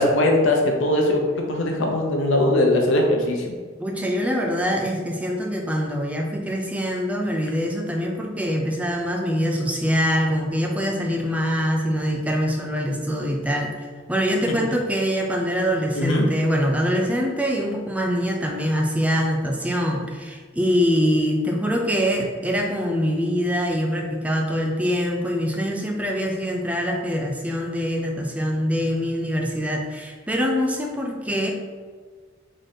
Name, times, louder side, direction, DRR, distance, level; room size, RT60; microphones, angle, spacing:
voice 1, 0.0-3.5 15.9-16.3, left 1 dB, 90° left, 1 dB, 0.7 m, -20 dB
voice 2, 3.8-13.7 14.1-31.5, equal, 5° right, 0 dB, 0.3 m, -24 dB
3.7 x 2.7 x 3.3 m, 1.5 s
head